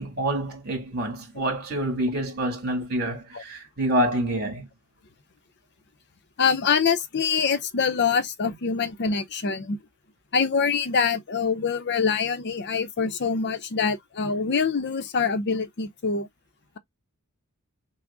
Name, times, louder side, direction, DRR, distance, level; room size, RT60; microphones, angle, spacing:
voice 1, 0.0-4.7 8.5-8.6, right 1 dB, 45° right, 2.4 m, -27 dB
voice 2, 6.4-9.8 10.3-16.3, left 5 dB, 50° left, 0.6 m, -25 dB
5.9 x 2.1 x 3.7 m
head